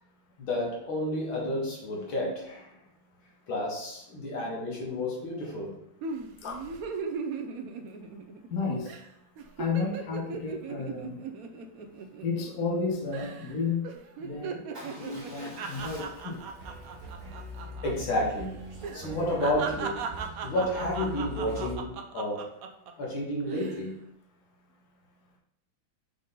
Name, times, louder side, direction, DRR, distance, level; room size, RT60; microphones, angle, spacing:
voice 1, 0.4-2.8 3.5-5.7 17.8-20.1 20.4-22.5 23.0-24.0, left 1 dB, 75° left, -3 dB, 2.5 m, -31 dB
sound 1, 6.0-8.5 8.8-9.1 9.4-12.8 13.1-13.5 13.8-17.9 18.2-18.3 18.8-22.9 23.4-23.8, right 5 dB, 70° right, 0.8 m, -38 dB
voice 2, 8.5-8.9 9.6-11.2 12.2-13.9 14.2-16.4, left 4 dB, 55° left, -1 dB, 1.4 m, -32 dB
Motorcycle / Engine starting / Idling, 14.7-18.8, equal, 20° right, 2.1 m, -49 dB
sound 2, 16.6-21.8, equal, 50° right, 1.1 m, -42 dB
6.6 x 3.8 x 3.8 m, 0.78 s
omnidirectional pair, 2.2 m